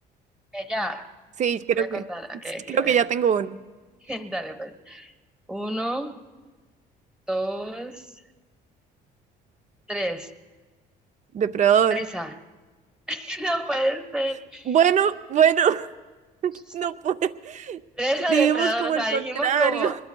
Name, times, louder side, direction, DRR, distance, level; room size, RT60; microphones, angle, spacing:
voice 1, 0.5-1.1 1.8-3.0 4.0-5.1 5.5-6.2 7.3-8.1 9.9-10.3 11.9-12.4 13.1-14.8 16.5-16.8 18.0-20.0, right 1 dB, 5° right, 7 dB, 1.2 m, -29 dB
voice 2, 1.4-2.0 2.7-3.6 11.3-12.0 14.7-15.9 16.4-17.8 18.3-19.9, right 8 dB, 45° right, 12 dB, 0.6 m, -22 dB
25.5 x 21.0 x 2.3 m, 1.3 s
cardioid pair, 110°, 17 cm